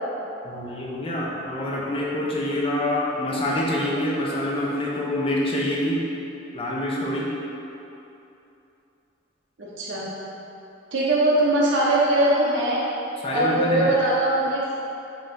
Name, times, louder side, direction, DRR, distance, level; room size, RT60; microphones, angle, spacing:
voice 1, 0.4-6.0 6.5-7.3 13.2-13.9, left 1 dB, 30° left, -4 dB, 0.6 m, -26 dB
voice 2, 9.6-10.1 10.9-12.8 13.3-14.6, right 1 dB, 65° right, -7 dB, 0.6 m, -21 dB
4.4 x 4.3 x 2.6 m, 2.9 s
head